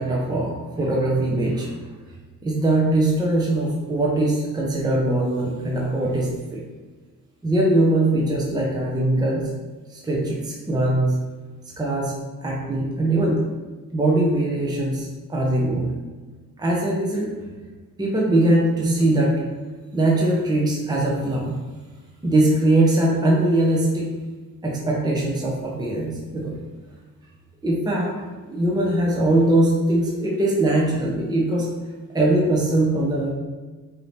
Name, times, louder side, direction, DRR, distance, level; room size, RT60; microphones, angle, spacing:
voice 1, 0.0-1.7 2.4-6.6 7.4-9.5 9.9-11.1 11.8-12.1 12.4-13.4 13.9-15.9 16.6-17.3 18.0-19.3 19.9-21.6 22.2-24.1 24.6-26.5 27.6-28.1 28.5-31.7 32.1-33.3, right 1 dB, 10° right, -3 dB, 0.7 m, -21 dB
4.7 x 2.7 x 3.2 m, 1.3 s
cardioid pair, 100°, 34 cm